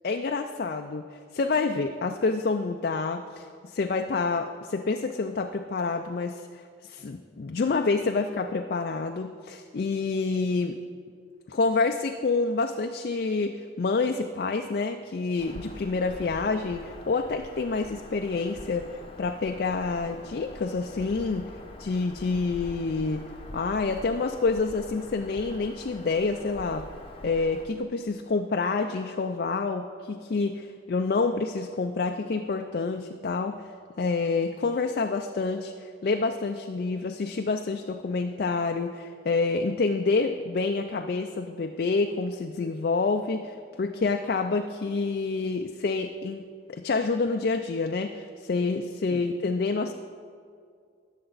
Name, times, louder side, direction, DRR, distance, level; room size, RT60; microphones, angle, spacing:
voice 1, 0.0-1.0 1.3-10.8 11.5-21.5 21.8-23.2 23.5-26.9 27.2-33.6 34.0-35.7 36.0-49.9, left 4 dB, 50° left, 5 dB, 0.4 m, -28 dB
Bird vocalization bird call bird song, 15.4-27.7, left 1 dB, 30° left, 0.8 m, -44 dB
19.0 x 6.8 x 4.0 m, 2.2 s
head